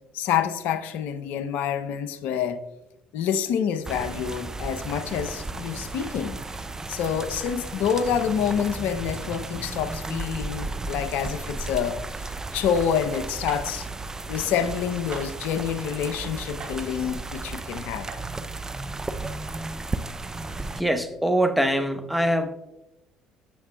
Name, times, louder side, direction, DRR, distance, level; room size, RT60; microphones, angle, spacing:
voice 1, 0.1-2.6 3.1-6.4 6.9-12.0 12.5-13.9 14.3-18.1, left 8 dB, 70° left, 0.6 m, -27 dB
sound 1, 3.8-20.8, right 3 dB, 20° right, 0.5 m, -34 dB
sound 2, 13.5-13.6 15.1-15.3 16.6-16.8 18.1-18.2, right 4 dB, 50° right, 3.3 m, -37 dB
voice 2, 20.7-22.5, right 1 dB, ahead, 0.9 m, -23 dB
14.5 x 6.9 x 2.3 m
hypercardioid pair, 60°, 3 cm